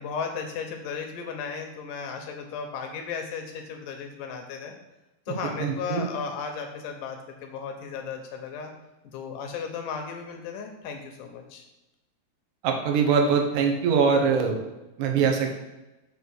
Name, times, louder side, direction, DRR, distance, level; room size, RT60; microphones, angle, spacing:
voice 1, 0.0-4.7 5.3-8.7 9.1-11.6, left 6 dB, 75° left, 4 dB, 2.0 m, -35 dB
voice 2, 5.6-6.0 12.6-14.6 15.0-15.5, right 5 dB, 70° right, 2 dB, 1.9 m, -22 dB
7.3 x 3.3 x 6.2 m, 1.0 s
omnidirectional pair, 4.5 m